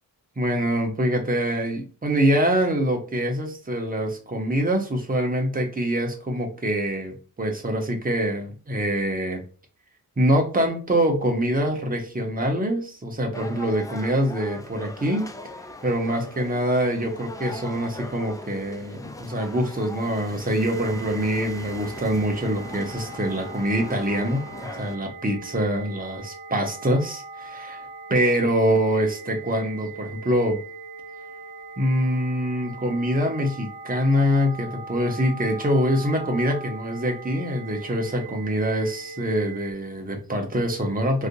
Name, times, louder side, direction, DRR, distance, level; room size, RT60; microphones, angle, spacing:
voice 1, 0.4-9.4 10.2-15.3 15.8-24.5 24.8-30.6 31.8-41.3, equal, 25° right, 2 dB, 0.9 m, -24 dB
sound 1, 13.3-25.0, left 2 dB, 10° left, 0.3 m, -40 dB
sound 2, 20.6-39.7, right 4 dB, 90° right, 0.8 m, -40 dB
3.4 x 2.6 x 2.6 m, 0.37 s
wide cardioid pair, 125°, 36 cm